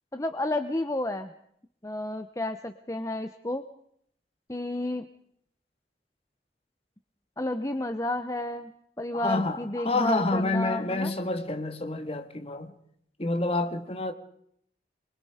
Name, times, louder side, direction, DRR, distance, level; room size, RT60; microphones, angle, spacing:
voice 1, 0.1-1.3 1.8-3.6 4.5-5.0 7.4-8.7 9.0-11.1, left 1 dB, 15° left, 0.9 m, -31 dB
voice 2, 9.1-12.7 13.2-14.1, left 2 dB, 35° left, 1.9 m, -28 dB
25.5 x 23.5 x 5.0 m
head